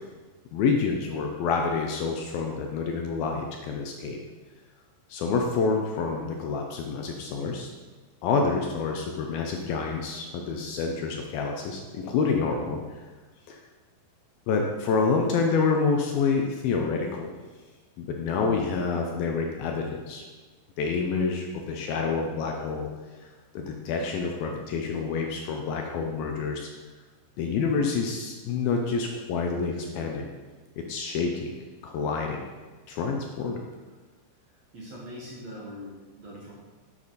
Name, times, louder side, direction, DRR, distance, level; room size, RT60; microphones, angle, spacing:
voice 1, 0.5-4.2 5.1-7.7 8.2-12.8 13.5-13.6 14.5-17.3 18.0-20.2 20.8-22.9 23.5-26.7 27.4-30.3 30.8-31.5 31.8-32.5 32.9-33.6, left 4 dB, 80° left, 2 dB, 2.1 m, -28 dB
voice 2, 34.7-36.5, equal, 50° right, -6 dB, 2.2 m, -41 dB
11.0 x 8.8 x 4.2 m, 1.4 s
omnidirectional pair, 5.2 m